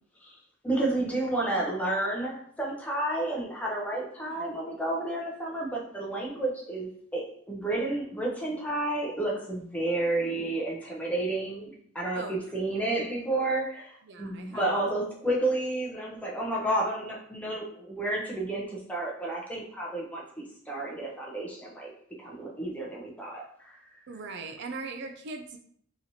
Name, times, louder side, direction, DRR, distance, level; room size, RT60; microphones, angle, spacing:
voice 1, 0.6-21.9 22.2-23.8, right 2 dB, 5° left, -3 dB, 0.6 m, -31 dB
voice 2, 4.2-4.6 12.1-12.4 14.0-14.8 24.1-25.6, right 3 dB, 55° right, 5 dB, 0.4 m, -40 dB
4.0 x 3.0 x 2.7 m, 0.62 s
head